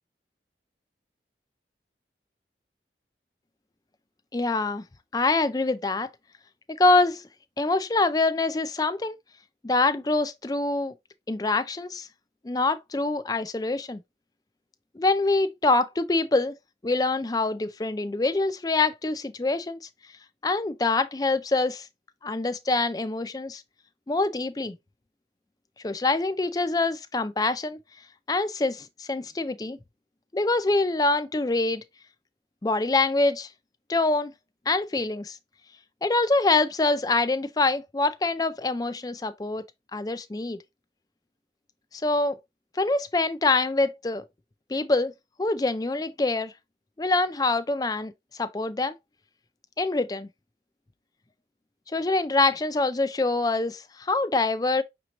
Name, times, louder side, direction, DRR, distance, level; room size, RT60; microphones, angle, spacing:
voice 1, 4.3-4.8 5.1-6.1 6.7-7.3 7.6-9.2 9.6-10.9 11.3-12.1 12.4-14.0 15.0-16.6 16.8-19.8 20.4-21.9 22.2-23.6 24.1-24.8 25.8-27.8 28.3-29.8 30.3-31.8 32.6-33.5 33.9-34.3 34.7-35.4 36.0-39.6 39.9-40.6 41.9-42.4 42.8-44.2 44.7-45.1 45.4-46.5 47.0-48.1 48.4-49.0 49.8-50.3 51.9-54.8, left 3 dB, 20° left, 0.4 m, -25 dB
5.9 x 3.0 x 2.9 m
head